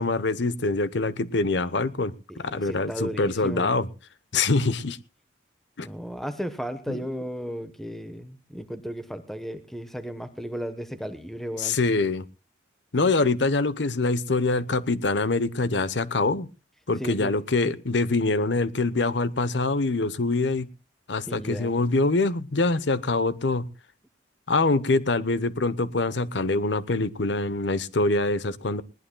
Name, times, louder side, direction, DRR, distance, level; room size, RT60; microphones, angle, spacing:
voice 1, 0.0-3.9 4.3-5.0 5.8-5.9 6.9-7.0 11.6-12.3 12.9-16.5 16.9-20.7 21.1-23.7 24.5-28.8, left 3 dB, 75° left, 0.9 m, -24 dB
voice 2, 2.3-3.8 5.8-11.8 17.0-17.3 21.3-21.8, equal, ahead, 1.1 m, -35 dB
20.5 x 19.0 x 2.3 m
head